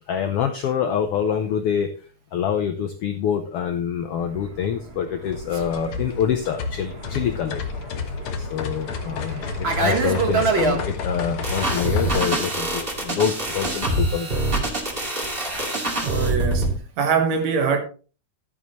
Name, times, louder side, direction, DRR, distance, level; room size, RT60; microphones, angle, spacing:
voice 1, 0.1-1.9 2.3-7.6 8.4-14.4, left 8 dB, 75° left, 1.3 m, -26 dB
Fixed-wing aircraft airplane, 4.3-10.8, right 4 dB, 80° right, 0.5 m, -27 dB
sound 1, 5.2-12.2, left 4 dB, 55° left, 1.7 m, -30 dB
sound 2, 11.4-16.7, right 1 dB, 20° right, 2.1 m, -25 dB
voice 2, 16.0-17.8, right 5 dB, 65° right, 2.5 m, -23 dB
12.0 x 9.7 x 3.1 m
omnidirectional pair, 3.5 m